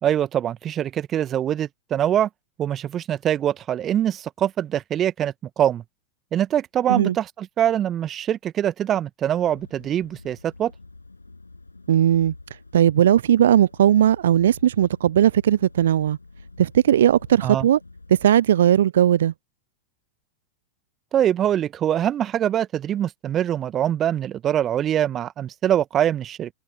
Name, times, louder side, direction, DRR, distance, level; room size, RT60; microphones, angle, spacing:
voice 1, 0.0-2.3 2.6-5.8 6.3-10.7 17.4-17.7 21.1-26.5, right 10 dB, 30° right, 1.8 m, -23 dB
sound 1, 9.4-18.3, left 3 dB, 80° left, 7.6 m, -47 dB
voice 2, 11.9-12.3 12.7-16.2 16.6-17.8 18.1-19.3, right 10 dB, 60° right, 0.7 m, -18 dB
figure-of-eight pair, 90°, 0 cm